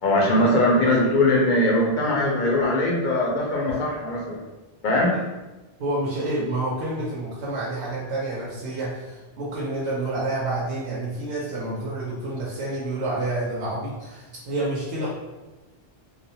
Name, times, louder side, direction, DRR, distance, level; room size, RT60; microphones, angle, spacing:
voice 1, 0.0-4.4 4.8-5.1, left 1 dB, 60° left, -2 dB, 0.6 m, -21 dB
voice 2, 5.8-15.1, right 2 dB, 80° right, -6 dB, 0.9 m, -29 dB
2.3 x 2.1 x 2.6 m, 1.1 s
omnidirectional pair, 1.1 m